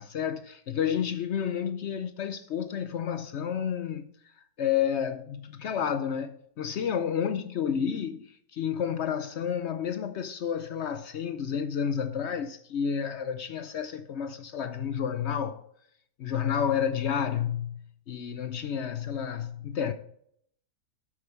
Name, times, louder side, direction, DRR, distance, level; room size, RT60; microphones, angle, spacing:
voice 1, 0.0-4.1 4.6-15.6 16.2-17.8 18.1-19.9, left 8 dB, 70° left, 0.6 m, -30 dB
8.6 x 6.7 x 4.6 m
omnidirectional pair, 1.8 m